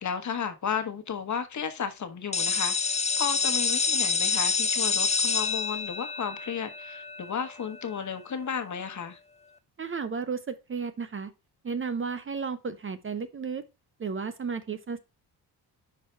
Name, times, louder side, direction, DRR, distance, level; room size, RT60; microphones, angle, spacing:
voice 1, 0.0-9.2, left 7 dB, 45° left, 1.2 m, -33 dB
sound 1, 2.3-8.0, left 5 dB, 15° left, 0.5 m, -27 dB
voice 2, 9.8-11.3 11.6-13.6 14.0-15.0, right 5 dB, 30° right, 0.6 m, -33 dB
5.8 x 4.7 x 4.4 m
cardioid pair, 80°, 42 cm